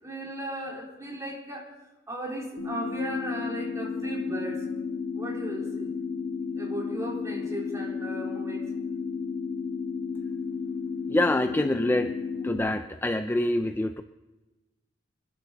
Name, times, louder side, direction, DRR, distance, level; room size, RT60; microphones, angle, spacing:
voice 1, 0.0-1.7 2.1-4.6 5.2-5.9 6.5-8.7, right 1 dB, 15° right, -3 dB, 3.9 m, -36 dB
sound 1, 2.6-12.6, left 5 dB, 50° left, 2.1 m, -33 dB
voice 2, 11.1-12.1 12.4-14.0, left 1 dB, 10° left, 8 dB, 0.4 m, -26 dB
24.5 x 11.5 x 4.0 m, 1.2 s
head